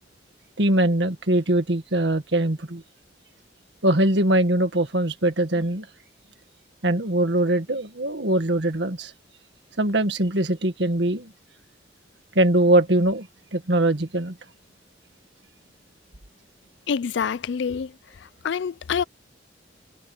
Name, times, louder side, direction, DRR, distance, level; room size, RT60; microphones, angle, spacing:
voice 1, 0.6-2.8 3.8-5.9 6.8-9.1 9.8-11.3 12.4-14.3, right 1 dB, 70° right, 1.8 m, -22 dB
voice 2, 16.9-17.9 18.4-19.0, left 6 dB, 75° left, 0.4 m, -26 dB
head